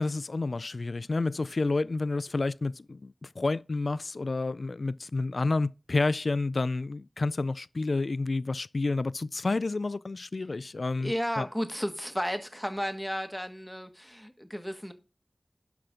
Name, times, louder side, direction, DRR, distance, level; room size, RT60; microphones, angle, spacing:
voice 1, 0.0-11.5, left 3 dB, 75° left, 0.4 m, -30 dB
voice 2, 11.0-14.9, equal, 5° left, 1.6 m, -33 dB
11.5 x 6.0 x 3.7 m
wide cardioid pair, 65°, 0 cm